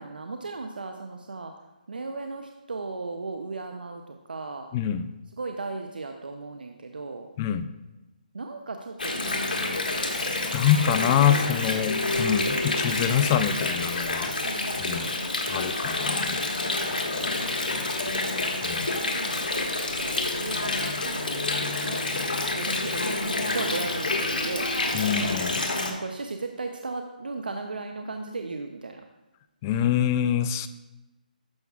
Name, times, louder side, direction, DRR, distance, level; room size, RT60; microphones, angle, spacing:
voice 1, 0.0-1.5 1.9-4.7 5.4-7.3 8.3-9.8 14.4-15.8 16.8-17.9 18.9-19.5 19.9-22.1 22.5-24.7 25.8-29.0, right 3 dB, 80° right, 5 dB, 0.6 m, -37 dB
voice 2, 4.7-5.1 7.4-7.7 10.5-14.3 14.7-15.1 15.5-16.5 18.6-18.9 24.9-25.6 29.6-30.7, left 9 dB, 20° left, 12 dB, 0.3 m, -25 dB
Water, 9.0-25.9, left 2 dB, 75° left, 1.6 m, -28 dB
11.5 x 6.8 x 2.4 m, 1.1 s
hypercardioid pair, 155°, 5 cm